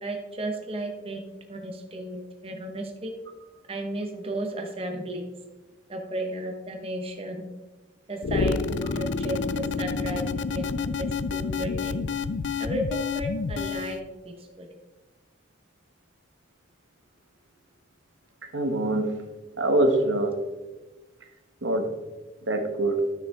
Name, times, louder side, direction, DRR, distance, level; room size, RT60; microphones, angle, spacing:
voice 1, 0.0-3.1 3.7-5.2 5.9-7.4 8.1-10.3 10.5-12.0 12.6-12.8 13.1-14.7, right 1 dB, 30° right, 3 dB, 1.1 m, -34 dB
sound 1, 8.2-14.0, left 4 dB, 75° left, 0.4 m, -29 dB
voice 2, 18.5-19.2 19.6-20.4 21.6-21.9 22.5-23.0, right 2 dB, 90° right, 5 dB, 1.2 m, -24 dB
12.5 x 6.4 x 3.7 m, 1.2 s
head